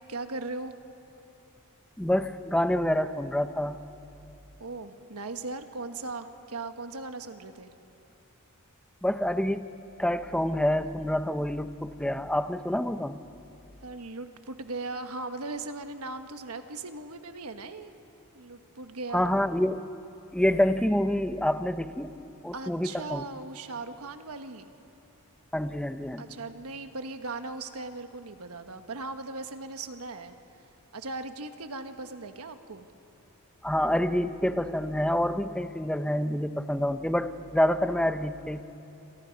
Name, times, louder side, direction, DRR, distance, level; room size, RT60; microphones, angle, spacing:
voice 1, 0.1-0.7 4.6-7.7 13.8-17.9 18.3-19.3 22.5-24.7 26.2-30.4 30.9-32.9, right 3 dB, 75° right, 8 dB, 1.3 m, -38 dB
voice 2, 2.0-3.8 9.0-9.6 10.0-13.2 19.1-19.8 20.3-22.1 22.4-23.2 25.5-26.3 33.6-38.6, left 1 dB, 5° left, 10 dB, 0.7 m, -27 dB
28.5 x 26.0 x 5.3 m, 2.9 s
head